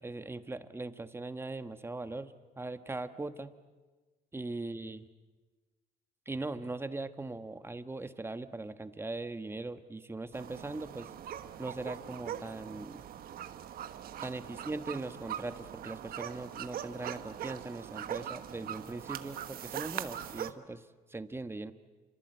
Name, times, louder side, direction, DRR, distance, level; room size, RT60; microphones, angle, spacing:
voice 1, 0.0-3.5 4.3-5.1 6.2-11.1 11.6-13.0 14.2-21.7, right 2 dB, 15° right, 11 dB, 1.3 m, -40 dB
sound 1, 10.3-20.5, right 10 dB, 60° right, 1.3 m, -42 dB
28.5 x 25.5 x 8.0 m, 1.3 s
cardioid pair, 110°, 17 cm